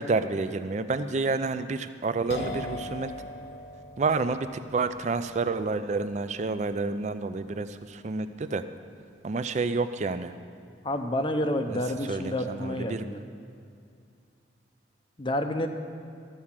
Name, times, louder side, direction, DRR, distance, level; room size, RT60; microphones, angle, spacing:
voice 1, 0.0-3.1 4.0-8.6 9.2-10.3 11.7-11.8 12.1-13.0, right 3 dB, 40° right, 11 dB, 0.4 m, -29 dB
sound 1, 2.3-9.9, left 1 dB, 60° left, 0.8 m, -42 dB
voice 2, 10.8-13.2 15.2-15.7, left 1 dB, 25° left, 6 dB, 0.6 m, -29 dB
13.5 x 4.8 x 7.3 m, 2.4 s
head